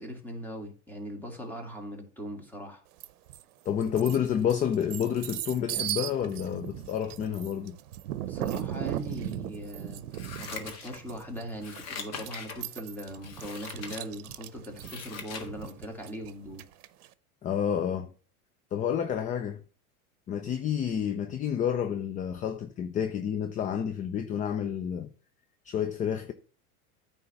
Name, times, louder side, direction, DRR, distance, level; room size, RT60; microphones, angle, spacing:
voice 1, 0.0-2.8 8.2-10.0 10.4-16.6, equal, 5° left, 2.2 m, -40 dB
sound 1, 3.0-3.4 3.8-17.1, right 13 dB, 80° right, 0.8 m, -38 dB
voice 2, 3.7-7.7 17.4-18.1 18.7-19.6 20.3-25.1 25.6-26.3, left 8 dB, 20° left, 0.4 m, -29 dB
Scissors, 10.1-11.2 11.6-12.6 13.2-14.0 14.5-15.5 15.9-16.0, left 5 dB, 35° left, 1.6 m, -42 dB
9.3 x 3.5 x 6.9 m
hypercardioid pair, 110°, 44 cm